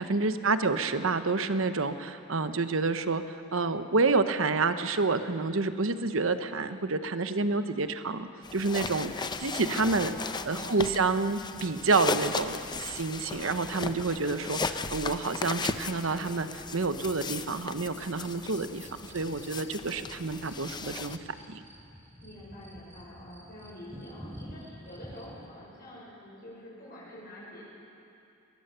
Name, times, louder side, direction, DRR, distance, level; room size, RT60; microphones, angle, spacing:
voice 1, 0.0-3.2 3.5-10.1 10.5-18.9 19.1-21.2 21.5-21.6, right 3 dB, 70° right, 10 dB, 1.0 m, -28 dB
sound 1, 8.4-21.2, left 4 dB, 20° left, 0.6 m, -36 dB
voice 2, 9.8-10.8 22.2-27.6, left 1 dB, 50° left, -6 dB, 5.6 m, -46 dB
sound 2, 18.0-25.5, equal, 10° right, 2.9 m, -49 dB
22.0 x 19.5 x 6.9 m, 2.6 s
head